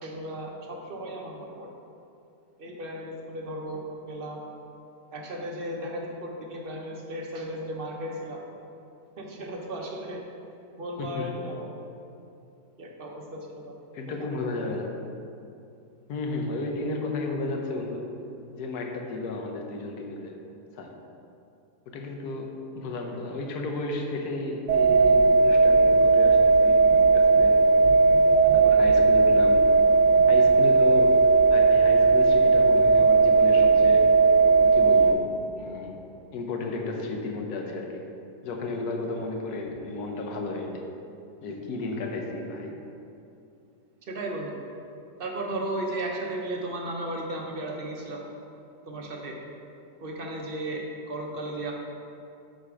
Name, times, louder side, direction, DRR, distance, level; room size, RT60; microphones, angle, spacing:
voice 1, 0.0-1.7 2.6-4.4 5.1-8.4 9.2-10.2 10.8-11.7 12.8-13.7 14.1-14.3 44.1-44.6 45.2-48.2 48.9-49.4 50.0-51.7, right 1 dB, 55° right, 0 dB, 0.6 m, -35 dB
voice 2, 11.0-11.3 13.9-15.0 16.1-18.1 18.6-20.3 20.7-21.0 21.9-27.6 28.5-29.7 30.3-34.1 34.6-36.0 36.3-38.0 38.4-40.8 41.4-42.8, left 3 dB, 70° left, 2 dB, 1.3 m, -33 dB
sound 1, 24.7-35.1, right 4 dB, 90° right, 1.3 m, -18 dB
7.9 x 4.2 x 4.9 m, 2.6 s
omnidirectional pair, 1.8 m